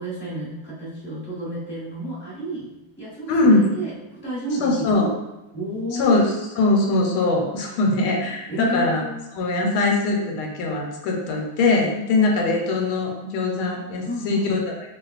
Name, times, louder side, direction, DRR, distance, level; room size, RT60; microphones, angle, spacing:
voice 1, 0.0-2.7 3.0-4.9 5.5-6.2 8.5-9.2 14.1-14.5, right 1 dB, 10° left, -9 dB, 0.6 m, -31 dB
voice 2, 3.3-3.7 4.6-5.1 5.9-9.0 9.3-14.9, left 2 dB, 80° left, 0 dB, 1.5 m, -21 dB
4.4 x 2.3 x 2.4 m, 0.97 s
omnidirectional pair, 2.3 m